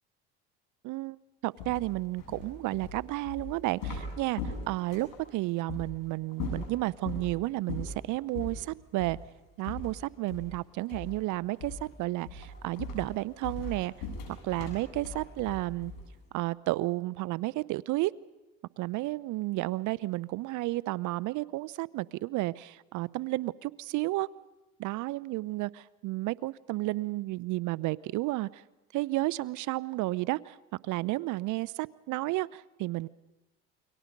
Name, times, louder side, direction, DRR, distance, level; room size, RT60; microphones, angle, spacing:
voice 1, 0.8-1.2 1.4-4.4 4.7-9.2 9.6-13.9 14.4-15.9 16.3-18.1 18.8-24.3 24.8-28.6 28.9-30.6 30.8-33.1, right 19 dB, 65° right, 20 dB, 0.7 m, -32 dB
sound 1, 1.6-5.2 5.7-5.9 6.3-7.3 7.7-8.0 8.3-8.6 9.0-9.2 9.6-10.6 10.9-11.2 11.6-11.9 12.2-16.2, left 3 dB, 75° left, 7.6 m, -39 dB
29.0 x 23.5 x 5.3 m, 1.0 s
supercardioid pair, 85°, 33 cm